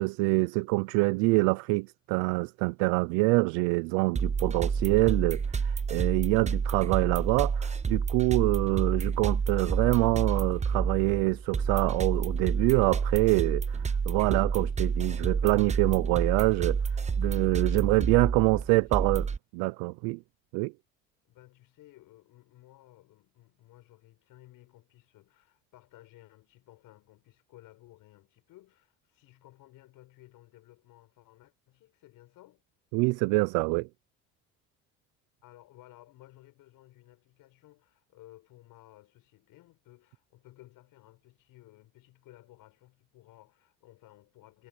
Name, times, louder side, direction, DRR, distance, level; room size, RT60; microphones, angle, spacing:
voice 1, 0.0-16.8 17.2-19.3 19.5-20.2 20.5-20.7 32.9-33.9, right 27 dB, 80° right, 0.7 m, -26 dB
sound 1, 4.2-19.4, right 5 dB, 20° right, 0.7 m, -29 dB
voice 2, 18.4-19.1 21.3-32.6 35.4-44.7, left 16 dB, 70° left, 6.8 m, -56 dB
supercardioid pair, 70°, 34 cm